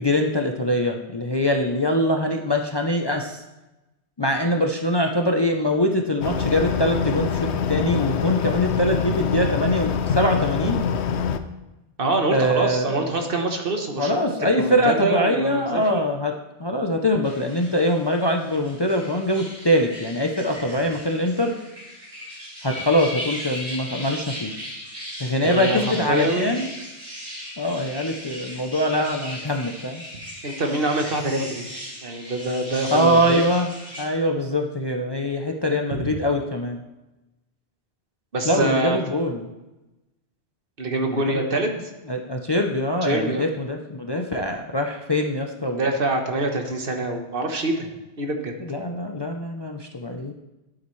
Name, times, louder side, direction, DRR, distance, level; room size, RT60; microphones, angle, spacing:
voice 1, 0.0-3.4 4.2-10.8 12.3-13.2 14.0-16.3 16.6-21.5 22.6-24.5 25.2-26.7 27.6-30.0 32.9-33.7 34.0-36.8 38.4-39.4 41.1-41.4 42.1-45.9 48.6-50.3, left 1 dB, 30° left, 3 dB, 0.6 m, -23 dB
sound 1, 6.2-11.4, left 7 dB, 85° left, 0.9 m, -24 dB
voice 2, 12.0-16.0 25.4-26.5 30.4-31.7 32.0-33.4 35.9-36.1 38.3-39.0 40.8-41.7 43.0-43.5 45.7-47.9 48.2-48.6, right 2 dB, 55° right, 4 dB, 1.3 m, -25 dB
sound 2, 17.2-34.0, equal, 75° right, 3.4 m, -37 dB
12.5 x 8.6 x 3.2 m, 1.0 s
omnidirectional pair, 1.1 m